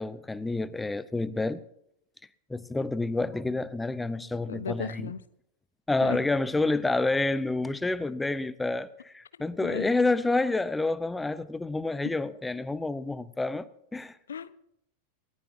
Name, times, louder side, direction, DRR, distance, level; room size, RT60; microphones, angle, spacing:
voice 1, 0.0-1.6 2.5-5.1 5.9-14.2, left 2 dB, 10° left, 0.8 m, -28 dB
voice 2, 4.5-5.2 6.0-6.2 9.6-9.9 14.3-14.5, left 7 dB, 70° left, 0.8 m, -35 dB
20.0 x 19.0 x 2.7 m
figure-of-eight pair, 90°, 0 cm